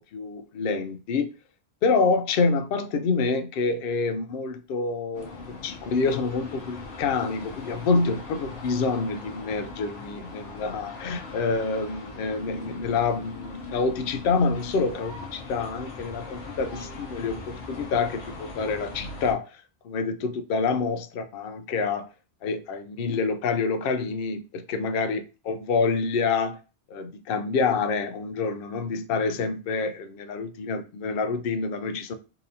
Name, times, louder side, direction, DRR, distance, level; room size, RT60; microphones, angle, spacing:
voice 1, 0.1-1.3 1.8-22.0 22.4-26.6 26.9-32.1, left 4 dB, 60° left, 0.6 m, -27 dB
sound 1, 5.1-19.3, left 3 dB, 80° left, 1.3 m, -40 dB
4.1 x 2.7 x 2.6 m
omnidirectional pair, 1.2 m